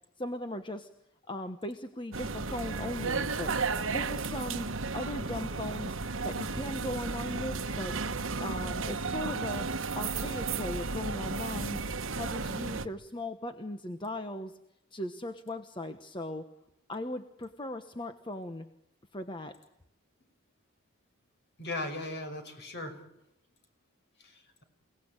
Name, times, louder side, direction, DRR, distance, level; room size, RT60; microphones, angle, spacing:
voice 1, 0.2-0.9 1.3-3.5 3.9-6.0 6.2-8.0 8.4-9.7 10.0-11.8 12.1-14.6 14.9-16.5 16.9-18.7 19.1-19.6, left 1 dB, 20° left, 7 dB, 1.2 m, -38 dB
sound 1, 2.1-12.9, right 4 dB, 65° right, 1.3 m, -33 dB
voice 2, 21.6-23.0 24.2-24.6, left 2 dB, 50° left, 7 dB, 5.8 m, -38 dB
29.0 x 18.5 x 9.1 m, 0.83 s
head